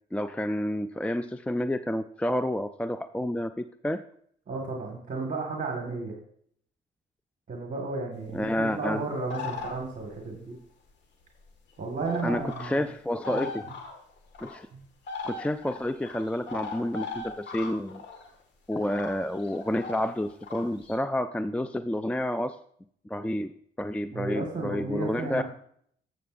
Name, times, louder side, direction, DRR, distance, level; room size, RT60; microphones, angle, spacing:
voice 1, 0.1-4.0 8.3-9.0 12.2-13.6 14.4-14.7 15.2-18.0 18.7-22.6 23.1-23.5 23.8-25.4, left 1 dB, 5° left, 11 dB, 0.3 m, -29 dB
voice 2, 4.5-6.1 7.5-10.6 11.8-12.8 13.3-13.4 14.7-14.8 24.1-25.4, right 3 dB, 40° right, 1 dB, 1.8 m, -33 dB
sound 1, 9.3-10.2 11.5-11.6 12.1-12.8 13.2-14.5 15.1-18.3 18.7-21.0, left 4 dB, 65° left, 1.8 m, -38 dB
12.5 x 7.7 x 2.6 m, 0.64 s
cardioid pair, 90°, 20 cm